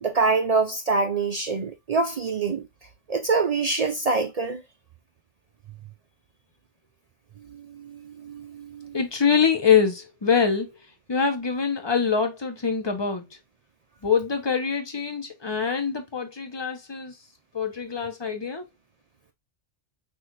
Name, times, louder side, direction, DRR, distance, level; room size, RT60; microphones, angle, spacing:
voice 1, 0.0-2.7 3.1-4.6 7.5-8.9, right 4 dB, 70° right, 0.3 m, -25 dB
voice 2, 8.9-10.8 11.1-13.4 14.0-17.1 17.5-18.7, left 6 dB, 25° left, 0.7 m, -24 dB
6.1 x 2.5 x 3.0 m
omnidirectional pair, 1.2 m